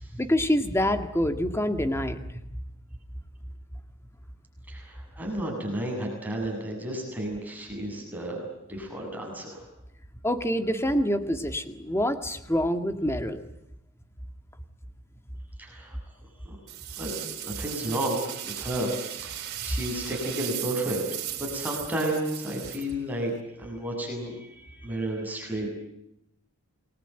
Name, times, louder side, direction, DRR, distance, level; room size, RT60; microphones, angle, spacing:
voice 1, 0.1-2.3 10.2-13.4, equal, 10° left, 8 dB, 1.8 m, -26 dB
voice 2, 4.7-9.6 15.6-16.0 16.4-16.6 17.0-18.9 19.2-23.3 23.6-25.7, right 1 dB, 5° right, 0 dB, 7.6 m, -32 dB
sound 1, 16.7-23.4, right 12 dB, 45° right, 4.1 m, -37 dB
29.5 x 21.0 x 9.1 m, 0.83 s
head